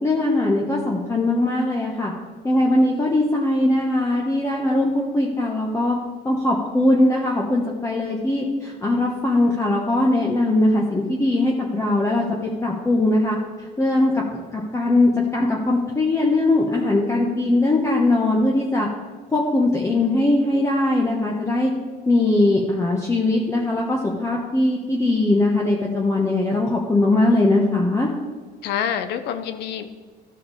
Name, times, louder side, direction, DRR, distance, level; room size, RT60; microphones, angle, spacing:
voice 1, 0.0-2.1 2.4-6.0 6.2-18.9 19.3-21.7 22.1-28.1, left 2 dB, 15° left, -2 dB, 1.1 m, -20 dB
voice 2, 28.6-29.9, left 9 dB, 80° left, 10 dB, 0.9 m, -27 dB
14.0 x 4.8 x 4.8 m, 1.5 s
cardioid pair, 110°, 17 cm